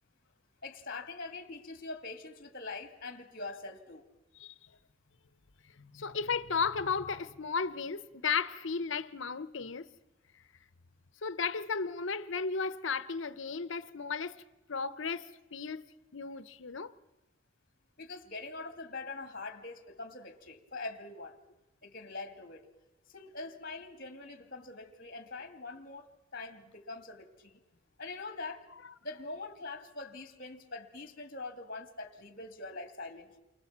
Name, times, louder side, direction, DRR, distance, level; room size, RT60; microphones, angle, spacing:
voice 1, 0.6-4.0 18.0-21.4 21.8-22.7 23.1-27.6 28.0-28.7 29.0-33.4, left 3 dB, 45° left, 2.3 m, -43 dB
voice 2, 5.6-9.9 10.3-10.4 11.2-14.4 14.7-15.8 16.1-16.9, left 5 dB, 70° left, 0.8 m, -34 dB
29.0 x 24.5 x 7.4 m
head